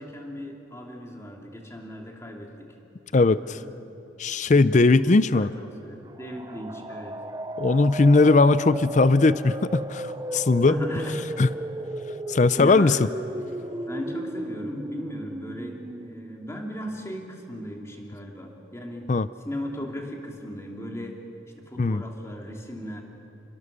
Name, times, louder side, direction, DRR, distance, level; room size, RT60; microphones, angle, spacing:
voice 1, 0.0-2.7 3.4-3.7 4.9-7.2 10.7-11.3 12.6-13.0 13.9-19.1 19.4-21.2 21.6-23.0, equal, 15° left, 0 dB, 2.7 m, -36 dB
voice 2, 3.1-3.6 4.2-5.5 7.6-10.8 11.4-11.5 12.3-13.0 19.1-19.3 21.8-22.0, left 3 dB, 40° left, 15 dB, 0.4 m, -19 dB
sound 1, 6.1-17.8, right 1 dB, 20° right, 0.5 m, -35 dB
30.0 x 21.0 x 6.8 m, 2.9 s
head